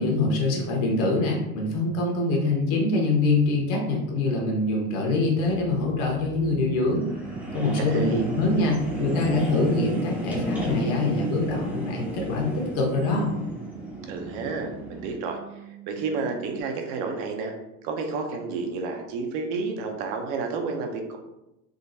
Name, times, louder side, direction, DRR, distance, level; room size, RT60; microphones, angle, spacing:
voice 1, 0.0-7.1 7.5-13.3, left 2 dB, 65° left, -1 dB, 1.1 m, -24 dB
sound 1, 5.4-15.1, equal, 5° right, 0.6 m, -33 dB
sound 2, 6.5-16.6, right 14 dB, 85° right, 1.5 m, -45 dB
voice 2, 7.8-8.2 14.1-15.4 15.9-17.5 17.8-21.2, right 4 dB, 55° right, 3 dB, 0.6 m, -30 dB
3.7 x 2.1 x 2.6 m, 0.90 s
supercardioid pair, 130°, 46 cm